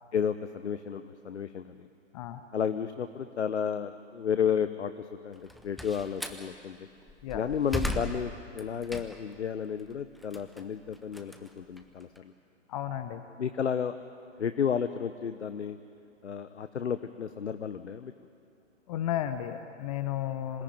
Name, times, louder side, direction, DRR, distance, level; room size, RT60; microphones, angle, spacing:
voice 1, 0.1-1.9 2.5-6.9 7.3-12.3 13.4-13.9 14.4-15.8 16.2-18.1, left 7 dB, 65° left, 10 dB, 1.0 m, -32 dB
Slam, 5.3-6.5 7.0-9.4 9.8-12.2, equal, ahead, 0.8 m, -37 dB
voice 2, 12.7-13.2 18.9-20.6, left 11 dB, 30° left, 10 dB, 0.9 m, -33 dB
26.5 x 18.0 x 9.2 m, 2.5 s
figure-of-eight pair, 125°, 37 cm